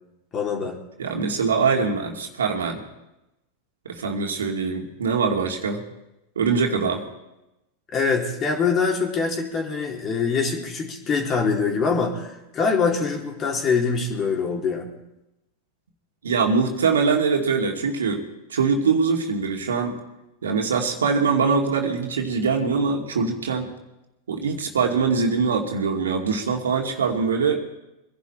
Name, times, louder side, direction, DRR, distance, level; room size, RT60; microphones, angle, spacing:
voice 1, 0.3-0.8 7.9-14.9, left 5 dB, 30° left, 1 dB, 3.7 m, -24 dB
voice 2, 1.0-2.8 3.8-5.8 6.4-7.0 16.2-18.2 18.5-19.9 20.4-23.7 24.3-27.6, right 5 dB, 85° right, 2 dB, 2.4 m, -23 dB
24.0 x 11.0 x 4.5 m, 0.93 s
hypercardioid pair, 100°, 0 cm